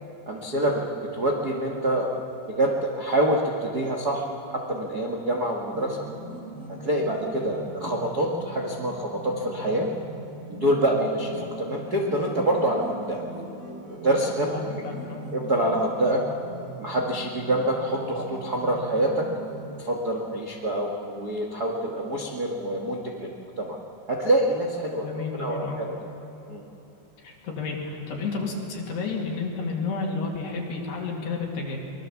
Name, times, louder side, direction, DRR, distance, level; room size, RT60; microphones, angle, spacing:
voice 1, 0.3-0.8 1.1-2.1 2.5-6.1 6.8-9.9 10.5-13.2 14.0-14.8 15.3-16.2 16.8-19.3 19.8-23.3 23.6-23.8 24.1-25.9 26.5-26.6, right 1 dB, 65° right, 0 dB, 0.9 m, -26 dB
sound 1, 5.7-19.7, right 1 dB, 40° right, 6.6 m, -41 dB
voice 2, 14.4-15.2 25.0-25.8 27.2-31.8, left 4 dB, 70° left, -2 dB, 4.5 m, -31 dB
24.5 x 21.5 x 7.2 m, 2.9 s
omnidirectional pair, 4.9 m